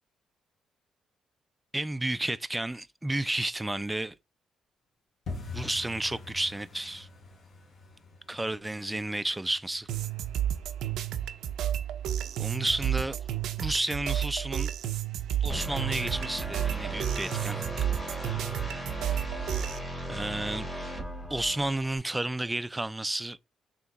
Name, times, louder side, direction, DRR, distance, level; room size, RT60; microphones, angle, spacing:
voice 1, 1.7-4.2 5.5-7.1 8.3-9.9 12.4-13.2 13.6-14.7 15.4-17.7 20.1-20.7 21.3-23.4, right 1 dB, 10° right, 0.3 m, -31 dB
sound 1, 5.3-16.9 17.2-17.5 17.7-18.1 18.4-18.5 19.0-19.6 19.9-20.0 20.5-20.6, left 4 dB, 50° left, 1.5 m, -47 dB
sound 2, 9.9-19.8, right 10 dB, 80° right, 0.4 m, -31 dB
sound 3, 15.5-22.0, equal, 10° left, 1.7 m, -37 dB
3.4 x 2.9 x 3.9 m
cardioid pair, 90°, 0 cm